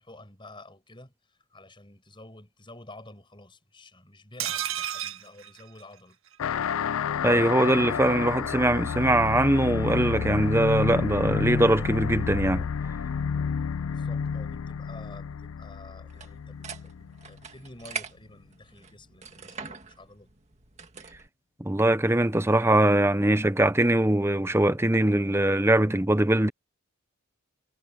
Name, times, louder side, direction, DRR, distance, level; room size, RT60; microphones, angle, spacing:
voice 1, 0.0-6.2 13.9-20.3, left 2 dB, 20° left, 7.5 m, -50 dB
sound 1, 4.4-6.4 6.7-6.8 7.0-7.1, right 11 dB, 70° right, 1.9 m, -33 dB
sound 2, 6.4-17.4, left 6 dB, 75° left, 0.4 m, -30 dB
voice 2, 7.2-12.7 21.6-26.5, right 1 dB, 10° right, 0.8 m, -22 dB
sound 3, 16.1-21.3, right 4 dB, 30° right, 1.9 m, -43 dB
head